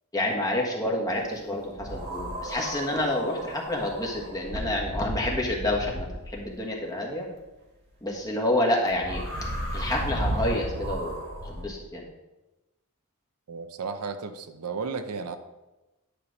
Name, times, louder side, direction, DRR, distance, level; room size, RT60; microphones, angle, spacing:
voice 1, 0.1-7.2 8.0-9.2 9.7-12.0, left 1 dB, 15° left, -2 dB, 1.4 m, -28 dB
sound 1, 1.8-6.5 8.9-11.6, right 1 dB, 50° right, 1.8 m, -34 dB
voice 2, 13.5-15.4, right 5 dB, 85° right, 9 dB, 0.7 m, -34 dB
10.0 x 3.3 x 6.3 m, 1.0 s
head